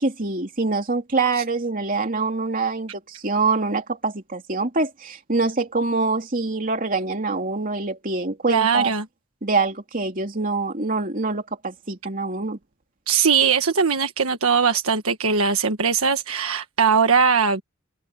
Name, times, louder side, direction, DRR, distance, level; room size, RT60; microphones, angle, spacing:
voice 1, 0.0-9.0 9.4-12.6, right 3 dB, 40° right, 3.1 m, -25 dB
voice 2, 8.5-9.0 13.1-17.6, right 6 dB, 85° right, 1.4 m, -20 dB
head